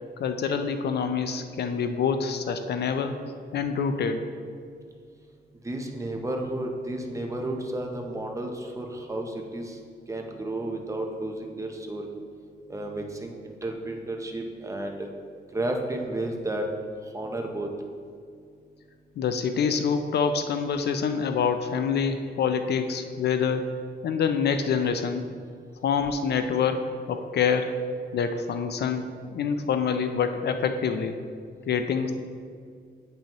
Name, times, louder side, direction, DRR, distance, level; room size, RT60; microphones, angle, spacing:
voice 1, 0.2-3.2 3.5-4.3 19.2-23.8 24.0-25.2 25.8-27.7 28.1-31.2 31.7-32.1, left 6 dB, 65° left, 8 dB, 0.4 m, -26 dB
voice 2, 5.6-9.8 10.1-12.1 12.7-15.1 15.5-16.7 17.1-17.7, right 1 dB, 15° right, 2 dB, 0.6 m, -32 dB
8.6 x 5.5 x 3.0 m, 2.2 s
wide cardioid pair, 155°, 18 cm